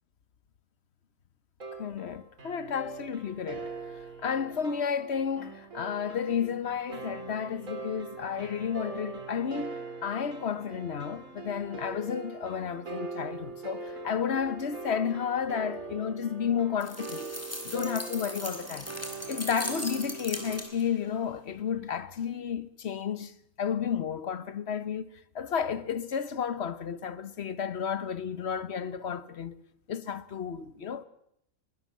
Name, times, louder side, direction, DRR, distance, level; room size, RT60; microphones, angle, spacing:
sound 1, 1.6-20.6, right 3 dB, 65° right, 3.4 m, -42 dB
voice 1, 1.8-3.7 4.2-17.3 17.6-18.9 19.3-25.1 25.3-29.6 29.9-31.0, left 7 dB, 50° left, 1.2 m, -32 dB
sound 2, 16.8-21.0, left 1 dB, 10° left, 2.7 m, -39 dB
21.0 x 19.0 x 7.4 m
omnidirectional pair, 1.5 m